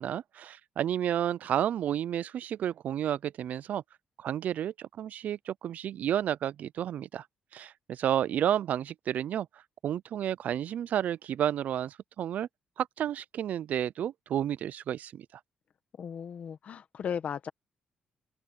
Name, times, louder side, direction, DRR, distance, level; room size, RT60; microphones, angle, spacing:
voice 1, 0.0-3.8 4.2-7.3 7.5-12.5 12.8-15.3, right 10 dB, 60° right, 0.4 m, -31 dB
voice 2, 16.0-17.5, left 7 dB, 50° left, 1.6 m, -36 dB
open air
cardioid pair, 130°, 3 cm